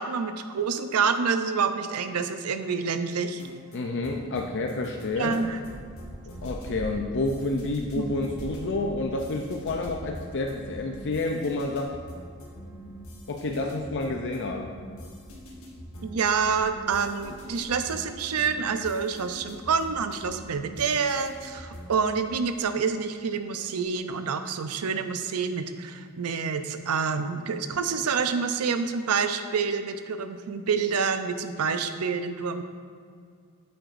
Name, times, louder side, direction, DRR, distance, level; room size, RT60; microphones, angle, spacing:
voice 1, 0.0-3.4 5.2-5.6 7.9-8.2 16.0-32.6, right 5 dB, 85° right, 9 dB, 0.5 m, -27 dB
sound 1, 3.1-22.0, equal, 70° left, 1.5 m, -44 dB
voice 2, 3.7-5.4 6.4-11.9 13.3-14.7 15.0-15.1, left 2 dB, 55° left, 2 dB, 0.5 m, -29 dB
sound 2, 5.1-17.9 18.3-18.4 19.5-20.9 21.9-22.0 22.3-22.7 23.8-23.9, right 1 dB, 30° right, 0.6 m, -46 dB
8.7 x 7.8 x 2.5 m, 2.2 s
head